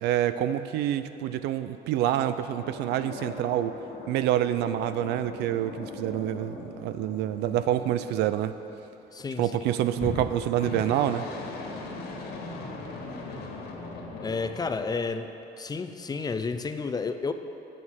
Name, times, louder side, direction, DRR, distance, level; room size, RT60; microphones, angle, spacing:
voice 1, 0.0-3.8 4.1-8.5 9.4-11.3, right 12 dB, 85° right, 12 dB, 0.5 m, -27 dB
sound 1, 2.6-8.9 9.9-14.9, left 3 dB, 75° left, 1.8 m, -39 dB
voice 2, 9.1-9.5 14.2-15.3 15.6-17.3, left 4 dB, 25° left, 9 dB, 0.5 m, -31 dB
9.4 x 7.6 x 6.3 m, 2.9 s
cardioid pair, 110°, 17 cm